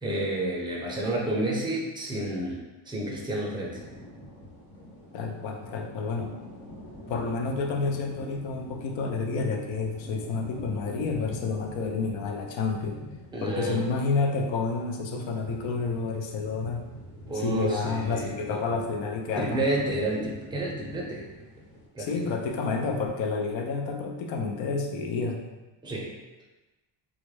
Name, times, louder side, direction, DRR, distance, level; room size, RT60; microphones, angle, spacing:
voice 1, 0.0-3.8 13.3-13.8 17.3-18.6 19.4-21.2 21.9-22.3 25.8-26.1, right 1 dB, 10° right, -3 dB, 0.5 m, -30 dB
sound 1, 3.7-21.9, equal, 85° left, 1.3 m, -45 dB
voice 2, 5.1-6.3 7.1-13.0 13.4-16.9 17.3-19.8 22.0-25.4, left 4 dB, 65° left, 2 dB, 0.6 m, -29 dB
2.3 x 2.2 x 3.1 m, 1.1 s
cardioid pair, 100°, 50 cm